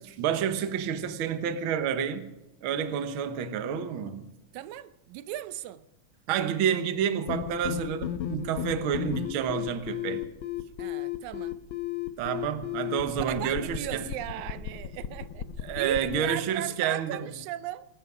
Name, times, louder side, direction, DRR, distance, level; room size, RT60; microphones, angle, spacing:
voice 1, 0.0-2.3 2.6-4.2 6.3-10.2 12.2-14.1 15.6-17.3, right 8 dB, 60° right, 1.5 m, -29 dB
voice 2, 4.5-5.8 10.8-11.6 13.1-15.5 15.8-17.9, right 13 dB, 85° right, 2.0 m, -37 dB
sound 1, 7.3-16.2, left 11 dB, 75° left, 1.1 m, -34 dB
22.5 x 11.0 x 4.8 m
omnidirectional pair, 3.3 m